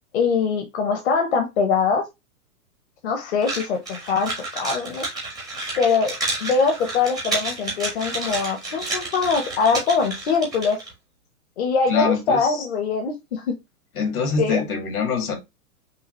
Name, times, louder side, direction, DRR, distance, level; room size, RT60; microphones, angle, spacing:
voice 1, 0.1-2.0 3.0-5.1 5.8-6.2 6.4-10.8 11.6-13.5 14.4-14.6, left 5 dB, 50° left, 0.9 m, -22 dB
sound 1, 3.4-10.9, right 2 dB, ahead, 0.4 m, -30 dB
voice 2, 11.9-12.7 14.0-15.4, left 5 dB, 70° left, 2.0 m, -24 dB
5.6 x 2.3 x 3.0 m
hypercardioid pair, 160°, 44 cm